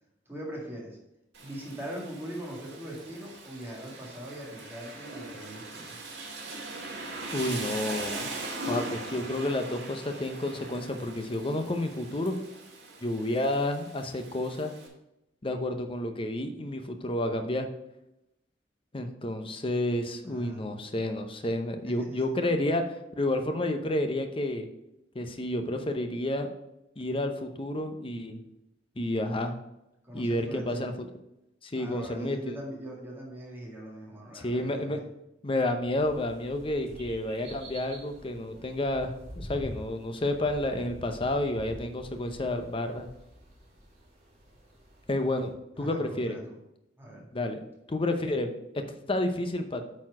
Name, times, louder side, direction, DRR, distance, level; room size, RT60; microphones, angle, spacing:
voice 1, 0.3-1.0 1.4-6.0 20.2-20.6 21.9-22.5 30.0-30.9 31.7-35.0 45.8-46.6 47.0-47.3, right 1 dB, 15° right, -3 dB, 2.1 m, -41 dB
Rain, 1.3-14.9, right 2 dB, 70° right, 1.9 m, -40 dB
voice 2, 7.3-8.3 8.7-12.3 13.0-14.7 15.4-17.7 18.9-22.8 23.2-24.7 25.1-26.5 27.0-28.4 29.0-29.5 30.1-30.9 31.6-32.6 34.3-35.0 35.4-43.1 45.1-46.4 47.3-47.6 47.9-48.8 49.1-49.8, left 1 dB, 30° left, 6 dB, 0.8 m, -30 dB
sound 1, 35.9-45.5, equal, 40° right, 2.9 m, -47 dB
8.6 x 4.3 x 4.8 m, 0.87 s
head